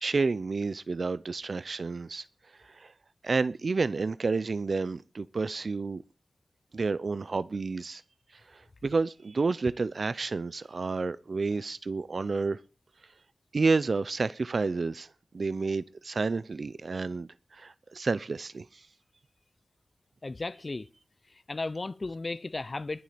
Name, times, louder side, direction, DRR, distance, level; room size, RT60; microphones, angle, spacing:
voice 1, 0.0-2.2 2.6-2.9 3.2-6.0 6.7-8.0 8.5-12.6 13.5-18.8, right 4 dB, 55° right, 0.6 m, -30 dB
voice 2, 20.2-20.9 21.3-23.0, left 3 dB, 35° left, 0.6 m, -35 dB
21.0 x 7.3 x 5.1 m
wide cardioid pair, 105°, 0 cm